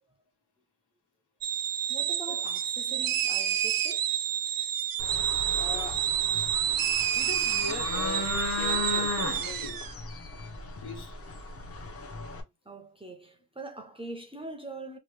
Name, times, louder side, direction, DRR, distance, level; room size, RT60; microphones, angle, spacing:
sound 1, 1.4-9.9, right 10 dB, 60° right, 0.5 m, -29 dB
voice 1, 1.9-4.1 12.1-12.3 12.6-15.0, right 2 dB, 15° right, 0.6 m, -43 dB
sound 2, 5.0-12.4, left 3 dB, 35° left, 0.9 m, -36 dB
voice 2, 5.5-6.1 7.1-9.9 10.8-11.2, left 4 dB, 75° left, 1.5 m, -40 dB
3.0 x 2.4 x 3.3 m
cardioid pair, 95°, 40 cm